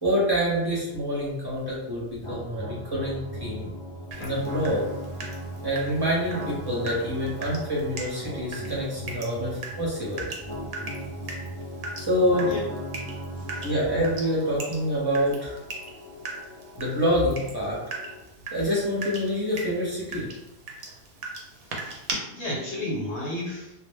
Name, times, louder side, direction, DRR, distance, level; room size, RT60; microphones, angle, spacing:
voice 1, 0.0-3.7 4.2-4.8 5.6-10.3 12.0-12.5 13.6-15.6 16.8-17.8 18.5-20.3, equal, 25° right, -6 dB, 0.6 m, -26 dB
sound 1, 2.2-18.2, right 1 dB, 40° left, 0.5 m, -38 dB
Water tap faucet / Drip, 4.1-22.1, right 3 dB, 60° right, 0.7 m, -40 dB
voice 2, 21.6-23.7, left 1 dB, 60° left, -4 dB, 1.0 m, -33 dB
2.2 x 2.1 x 3.3 m, 0.90 s
omnidirectional pair, 1.3 m